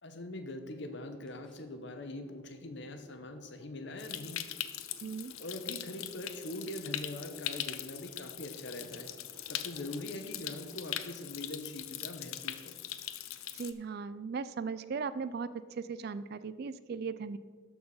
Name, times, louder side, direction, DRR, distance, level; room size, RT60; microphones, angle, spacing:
voice 1, 0.0-4.4 5.0-5.1 5.4-9.1 9.5-12.7, left 1 dB, 55° left, 7 dB, 0.9 m, -42 dB
sound 1, 0.6-10.9, right 2 dB, 5° left, 1.2 m, -61 dB
Stream, 4.0-13.7, left 12 dB, 85° left, 0.6 m, -41 dB
voice 2, 5.0-5.3 13.5-15.5 15.8-17.4, right 5 dB, 50° right, 14 dB, 0.3 m, -37 dB
13.0 x 4.6 x 5.5 m, 1.5 s
head